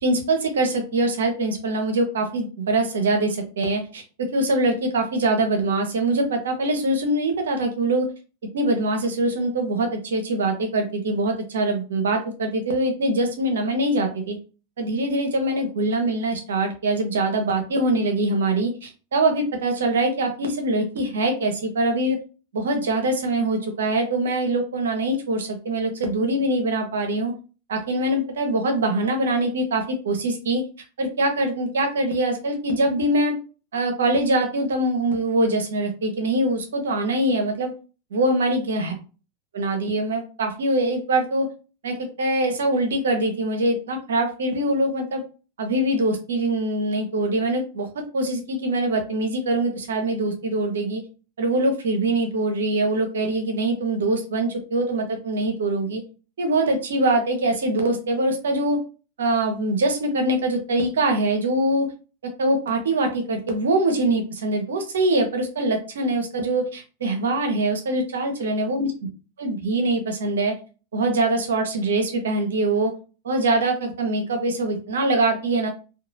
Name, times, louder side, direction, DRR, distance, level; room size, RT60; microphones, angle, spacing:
voice 1, 0.0-8.1 8.5-14.4 14.8-22.2 22.5-27.3 27.7-30.6 31.0-33.4 33.7-37.7 38.1-38.9 39.5-41.5 41.8-45.2 45.6-51.0 51.4-56.0 56.4-58.8 59.2-61.9 62.4-68.9 69.4-70.5 70.9-72.9 73.2-75.7, right 2 dB, 65° right, 5 dB, 0.6 m, -23 dB
2.8 x 2.3 x 2.6 m, 0.35 s
figure-of-eight pair, 90°, 0 cm